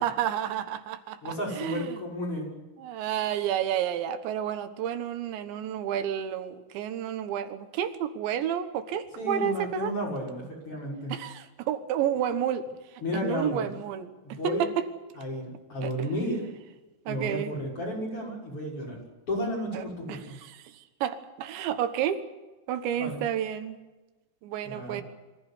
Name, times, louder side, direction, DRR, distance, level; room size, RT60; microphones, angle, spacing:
voice 1, 0.0-2.0 2.8-9.9 11.1-12.7 13.1-14.9 15.8-15.9 17.1-17.5 19.7-22.3 22.7-23.8 24.4-25.0, right 10 dB, 90° right, 9 dB, 3.6 m, -31 dB
voice 2, 1.2-2.5 9.2-11.2 13.0-13.7 14.2-14.7 15.2-16.4 17.1-19.0 19.3-20.4 23.0-23.2 24.6-25.0, equal, 30° left, -2 dB, 6.9 m, -32 dB
24.0 x 15.5 x 9.9 m, 1.2 s
omnidirectional pair, 5.0 m